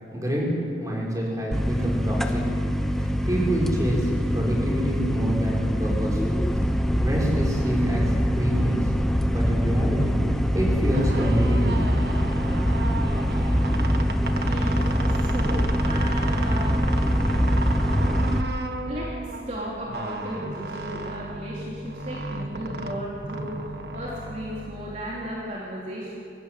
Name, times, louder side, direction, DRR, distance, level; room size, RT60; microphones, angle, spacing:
voice 1, 0.1-0.5 0.8-2.4 3.3-6.2 7.0-8.9 9.3-11.8, equal, 20° right, -4 dB, 5.9 m, -27 dB
sound 1, 1.5-18.4, equal, ahead, 0.9 m, -24 dB
sound 2, 10.9-25.4, right 2 dB, 65° right, 1.7 m, -34 dB
voice 2, 14.4-16.9 18.8-26.1, equal, 40° right, -5 dB, 3.3 m, -35 dB
23.0 x 17.0 x 9.2 m, 2.5 s
head